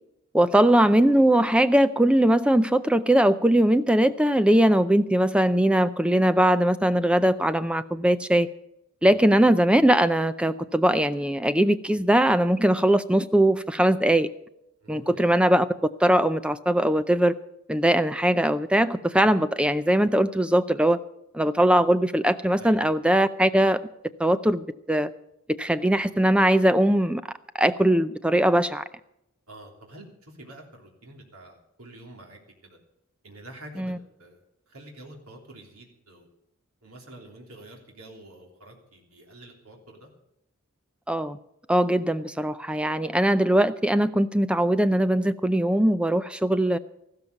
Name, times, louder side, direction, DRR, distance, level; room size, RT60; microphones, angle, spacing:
voice 1, 0.3-8.5 9.0-14.3 14.9-15.7 16.0-17.4 17.7-21.0 21.3-23.8 24.2-25.1 25.5-27.2 27.6-28.8 33.8-34.0 41.1-41.4 41.7-46.8, right 1 dB, 5° right, 13 dB, 0.4 m, -21 dB
voice 2, 14.8-15.2 22.6-23.0 29.5-32.8 33.2-36.3 36.8-40.1, right 1 dB, 80° right, 1 dB, 3.2 m, -47 dB
14.5 x 13.0 x 5.3 m, 0.82 s
head